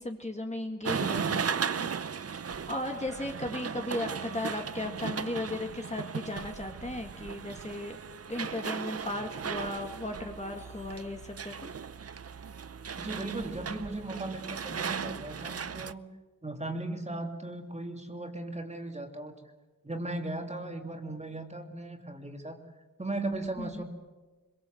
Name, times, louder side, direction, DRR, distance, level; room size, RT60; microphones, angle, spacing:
voice 1, 0.0-2.4 2.7-8.0 8.3-11.7 23.6-23.8, left 2 dB, 20° left, 3 dB, 1.9 m, -36 dB
sound 1, 0.8-15.9, right 6 dB, 45° right, 0.7 m, -36 dB
voice 2, 13.0-16.0 16.4-19.4 19.8-22.6 23.0-23.8, right 2 dB, 20° right, 4 dB, 2.8 m, -37 dB
25.5 x 22.5 x 7.9 m, 1.2 s
wide cardioid pair, 125°, 34 cm